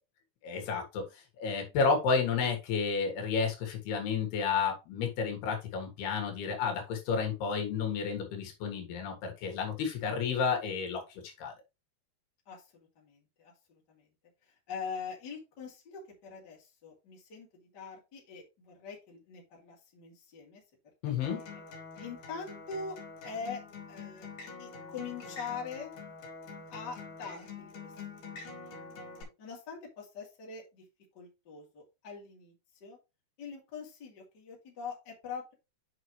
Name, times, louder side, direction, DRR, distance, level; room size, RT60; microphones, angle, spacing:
voice 1, 0.4-11.5 21.0-21.4, left 5 dB, 75° left, 3 dB, 3.7 m, -31 dB
voice 2, 12.5-14.1 14.4-20.6 21.0-21.6 22.0-23.0 23.2-23.6 23.9-24.3 24.6-25.9 26.7-28.7 29.4-30.8 31.1-32.5 32.8-33.0 33.4-35.5, left 5 dB, 30° left, -2 dB, 2.7 m, -43 dB
Acoustic guitar, 21.2-29.2, left 4 dB, 55° left, 4.2 m, -46 dB
8.9 x 5.3 x 3.2 m, 0.26 s
omnidirectional pair, 4.6 m